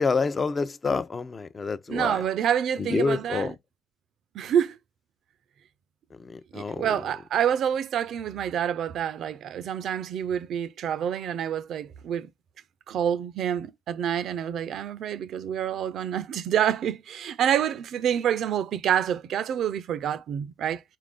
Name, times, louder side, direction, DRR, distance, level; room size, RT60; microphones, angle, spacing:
voice 1, 0.0-2.2 2.9-3.5 6.2-6.9, left 4 dB, 35° left, 0.5 m, -27 dB
voice 2, 1.9-3.5 4.3-4.8 6.5-12.3 12.9-20.8, right 9 dB, 70° right, 0.4 m, -27 dB
4.1 x 2.5 x 3.6 m
cardioid pair, 90°, 0 cm